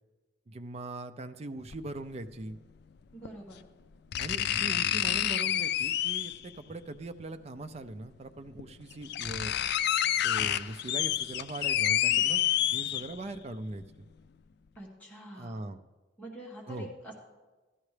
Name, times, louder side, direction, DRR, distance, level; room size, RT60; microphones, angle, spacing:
voice 1, 0.5-2.6 4.2-9.5 10.2-12.4 12.7-13.8 15.3-15.8 16.7-16.9, right 2 dB, 35° right, 8 dB, 0.5 m, -40 dB
sound 1, 1.7-1.8 3.2-3.3 4.1-6.5 7.8-7.9 8.6-8.7 8.9-13.4 13.8-13.9, left 11 dB, 60° left, 0.3 m, -28 dB
voice 2, 3.1-3.6 12.0-12.3 14.8-15.6 16.2-17.1, right 1 dB, 10° left, -4 dB, 1.5 m, -46 dB
14.0 x 12.0 x 3.3 m, 1.2 s
head